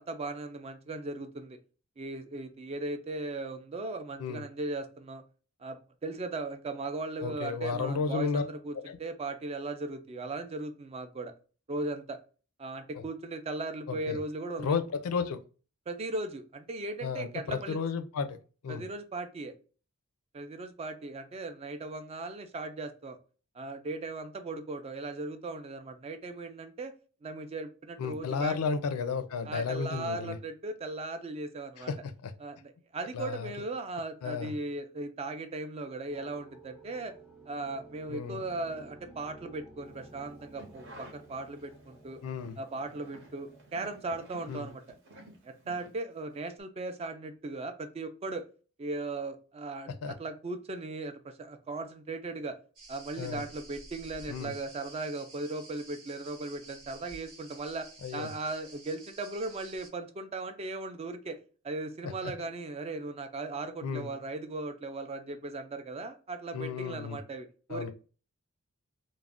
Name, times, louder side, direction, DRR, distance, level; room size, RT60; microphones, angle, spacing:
voice 1, 0.0-1.6 2.0-5.2 5.6-11.3 11.7-12.2 12.6-14.8 15.9-17.8 18.7-19.6 20.3-23.2 23.5-26.9 27.2-28.6 29.4-31.9 32.4-37.1 37.5-42.2 42.6-44.8 45.4-48.5 48.8-52.6 52.9-61.4 61.6-67.9, right 2 dB, 30° right, 8 dB, 0.3 m, -38 dB
voice 2, 7.2-8.4 8.9-9.0 13.9-14.2 14.6-15.4 17.0-18.4 18.6-18.8 28.0-30.4 31.8-32.3 33.1-33.5 34.2-34.5 38.1-38.4 42.2-42.6 44.5-44.7 50.0-50.1 53.2-53.4 54.3-54.5 58.0-58.3 62.0-62.3 63.8-64.1 66.5-67.2 67.7-67.9, left 5 dB, 75° left, 9 dB, 0.4 m, -33 dB
sound 1, 36.1-44.7, right 2 dB, ahead, 0.7 m, -54 dB
sound 2, 40.3-41.9 42.3-46.4 46.6-46.7, right 1 dB, 55° right, 0.8 m, -53 dB
sound 3, 52.8-59.9, right 2 dB, 85° right, 1.1 m, -51 dB
2.4 x 2.1 x 3.4 m, 0.37 s
head